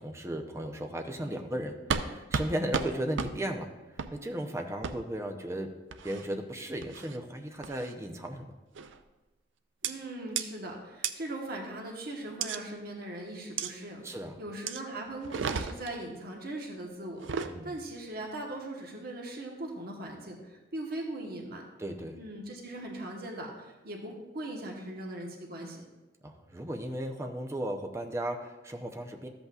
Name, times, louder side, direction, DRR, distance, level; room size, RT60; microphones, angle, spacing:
voice 1, 0.0-3.7 4.1-5.7 6.0-8.6 14.0-14.4 17.4-17.8 21.8-22.2 26.2-29.3, right 1 dB, 15° right, 4 dB, 0.7 m, -35 dB
sound 1, 1.9-2.1 2.3-2.5 2.7-2.9 3.2-3.3 4.0-4.1 4.8-4.9 5.9-6.3 6.8-7.2 7.6-7.9 8.8-9.0 9.8-9.9 10.4-10.5 11.0-11.1 12.4-12.6 13.6-13.7 14.7-14.8 15.2-16.0 17.1-17.5, right 6 dB, 75° right, 0.5 m, -32 dB
voice 2, 9.8-21.6 22.1-25.8, right 1 dB, 55° right, 0 dB, 1.3 m, -40 dB
13.0 x 8.1 x 2.4 m, 1.1 s
head